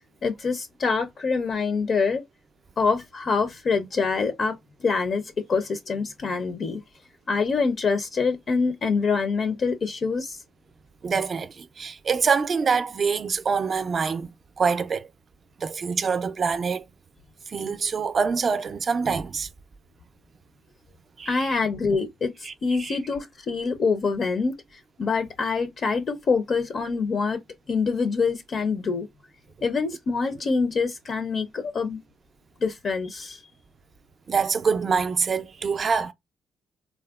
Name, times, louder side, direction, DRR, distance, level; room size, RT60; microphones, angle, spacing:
voice 1, 0.2-2.2 2.8-4.5 4.8-6.8 7.3-10.4 21.3-27.4 27.7-29.1 29.6-32.0 32.6-33.4, left 4 dB, 50° left, 0.4 m, -25 dB
voice 2, 11.0-15.1 15.6-16.8 17.5-19.5 21.2-21.6 22.4-23.0 34.3-36.1, right 5 dB, 45° right, 0.3 m, -25 dB
3.5 x 2.0 x 2.3 m
cardioid pair, 90°, 0 cm